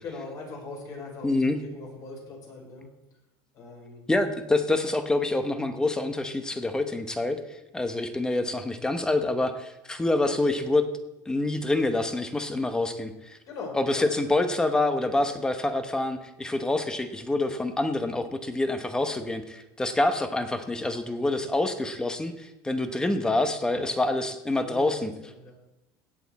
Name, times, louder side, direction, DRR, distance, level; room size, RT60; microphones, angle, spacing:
voice 1, 0.0-2.9 3.5-4.1 13.5-14.0 23.7-23.9 24.6-24.9 25.2-25.5, left 3 dB, 35° left, 0 dB, 4.3 m, -40 dB
voice 2, 1.2-1.6 4.1-7.4 7.7-10.9 11.3-13.4 13.7-25.1, left 2 dB, 10° left, 8 dB, 0.9 m, -26 dB
16.5 x 8.3 x 4.2 m, 0.96 s
cardioid pair, 165°, 10 cm